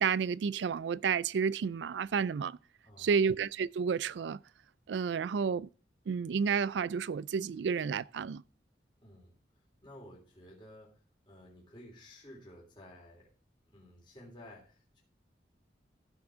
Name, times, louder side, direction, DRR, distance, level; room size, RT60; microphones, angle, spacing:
voice 1, 0.0-2.6 3.0-4.4 4.9-5.7 6.1-8.4, right 6 dB, 85° right, 0.4 m, -31 dB
voice 2, 2.8-3.2 9.0-9.4 9.8-13.3 13.7-15.0, left 1 dB, 30° left, 3.3 m, -53 dB
15.0 x 6.1 x 3.6 m
head